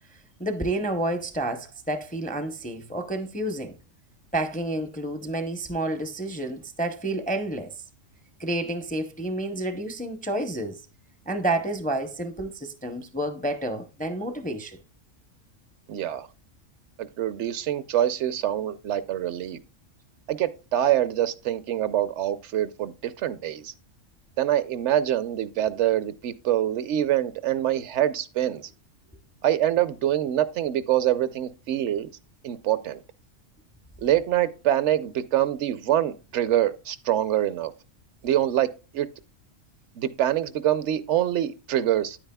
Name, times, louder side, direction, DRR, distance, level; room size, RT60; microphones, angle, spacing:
voice 1, 0.4-3.8 4.3-7.7 8.4-10.8 11.3-14.8, right 1 dB, 10° left, 0.4 m, -29 dB
voice 2, 15.9-16.3 17.0-19.6 20.3-23.7 24.4-28.6 29.4-32.1 32.4-33.0 34.0-37.7 38.2-38.7 38.9-39.1 40.0-42.2, right 12 dB, 70° right, 0.8 m, -25 dB
9.3 x 8.8 x 2.2 m
omnidirectional pair, 1.3 m